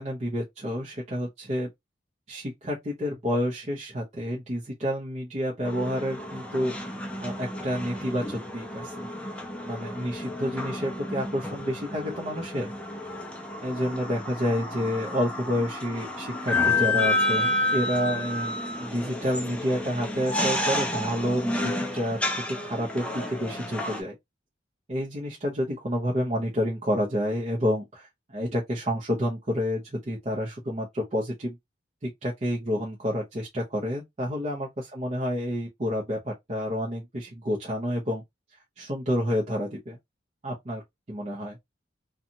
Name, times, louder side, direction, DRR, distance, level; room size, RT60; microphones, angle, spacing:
voice 1, 0.0-1.7 2.3-6.9 7.2-9.1 9.6-12.7 13.6-22.2 22.5-24.2 24.9-31.6 32.0-38.2 38.8-40.0 40.4-40.8 41.1-41.6, equal, 35° right, 0.7 m, -29 dB
sound 1, 5.6-24.0, left 2 dB, 5° left, 0.5 m, -30 dB
2.8 x 2.4 x 2.6 m
head